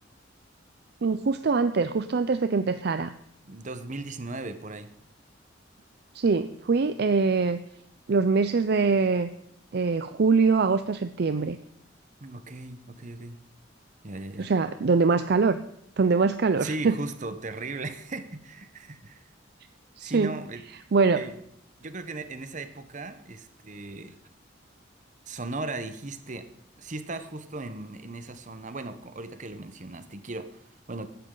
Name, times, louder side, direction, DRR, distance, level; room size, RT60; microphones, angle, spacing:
voice 1, 1.0-3.1 6.1-7.6 8.1-9.3 9.7-11.6 14.4-15.6 16.0-17.0 20.0-20.3 20.9-21.2, right 4 dB, 60° right, 11 dB, 0.5 m, -23 dB
voice 2, 3.4-4.9 12.2-13.4 14.0-14.5 16.6-19.2 20.0-20.6 21.1-21.4 21.8-24.2 25.3-26.5 26.8-31.1, right 2 dB, 40° right, 11 dB, 1.0 m, -37 dB
15.5 x 11.5 x 3.9 m, 0.70 s
head